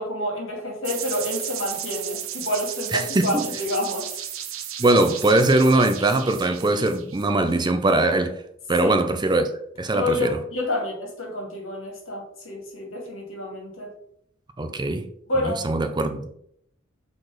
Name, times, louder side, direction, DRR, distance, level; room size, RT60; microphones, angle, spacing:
voice 1, 0.0-4.1 8.8-9.0 9.9-13.9 15.3-15.6, left 1 dB, 75° left, 2.3 m, -28 dB
sound 1, 0.8-7.6, right 10 dB, 85° right, 0.9 m, -34 dB
voice 2, 2.9-3.4 4.8-8.4 8.7-9.5 9.8-10.4 14.6-15.1 15.4-16.3, right 2 dB, 20° right, 0.5 m, -21 dB
6.1 x 4.2 x 4.9 m
head